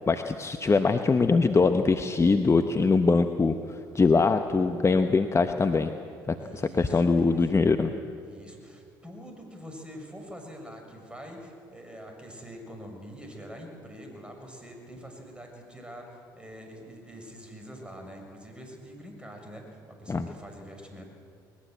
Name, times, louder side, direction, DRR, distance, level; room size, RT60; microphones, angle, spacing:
voice 1, 0.1-3.5 3.9-5.9 6.3-7.9 20.1-20.3, left 4 dB, 25° left, 7 dB, 1.1 m, -22 dB
voice 2, 6.4-7.5 8.2-21.1, equal, 10° right, 3 dB, 6.6 m, -45 dB
21.0 x 20.0 x 7.8 m, 2.3 s
hypercardioid pair, 55°, 11 cm